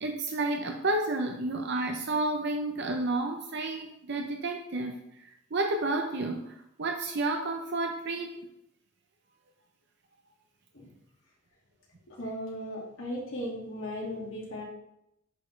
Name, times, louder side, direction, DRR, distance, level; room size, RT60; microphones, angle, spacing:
voice 1, 0.0-5.0 5.5-8.3, right 2 dB, 55° right, 3 dB, 0.7 m, -31 dB
voice 2, 12.1-14.6, equal, 75° left, -3 dB, 2.2 m, -37 dB
10.5 x 4.3 x 3.2 m, 0.79 s
head